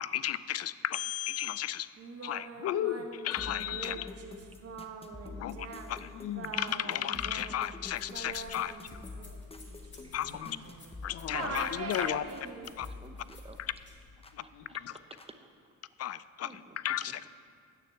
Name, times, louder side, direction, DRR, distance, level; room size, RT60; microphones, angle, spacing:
voice 1, 0.0-1.9 2.2-2.7 3.3-4.1 5.4-5.5 5.9-6.1 6.5-9.0 10.1-10.6 11.0-12.2 12.8-12.9 13.6-13.7 14.9-15.0 16.0-17.3, left 12 dB, 55° left, 16 dB, 0.4 m, -34 dB
Singing, 2.0-11.0 11.3-12.7, right 4 dB, 50° right, 1.2 m, -43 dB
voice 2, 2.6-3.1 5.3-5.6 6.1-6.5 10.0-10.6 14.3-14.9, left 11 dB, 85° left, 10 dB, 0.7 m, -37 dB
sound 1, 3.4-12.5 12.8-14.4 15.2-15.3, left 3 dB, 20° left, 0.8 m, -47 dB
sound 2, 7.8-14.1, left 2 dB, 35° left, 2.2 m, -56 dB
voice 3, 10.0-10.4 11.9-12.7 13.0-13.6 14.7-14.8 16.4-16.8, right 2 dB, 20° right, 6 dB, 0.7 m, -51 dB
9.3 x 6.7 x 7.9 m, 2.2 s
cardioid pair, 90°, 31 cm